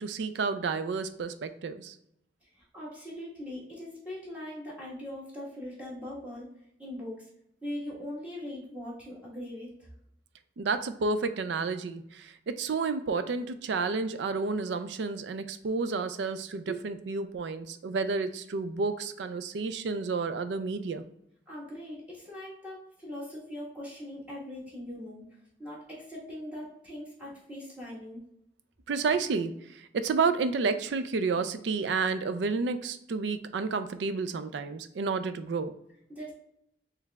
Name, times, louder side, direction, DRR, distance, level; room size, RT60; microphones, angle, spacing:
voice 1, 0.0-2.0 10.6-21.0 28.9-35.7, right 4 dB, 75° right, 11 dB, 0.4 m, -30 dB
voice 2, 2.4-7.3 7.6-9.9 21.5-25.2 25.6-28.2 36.1-36.3, left 1 dB, 10° right, -6 dB, 1.3 m, -41 dB
4.6 x 3.3 x 2.2 m, 0.74 s
head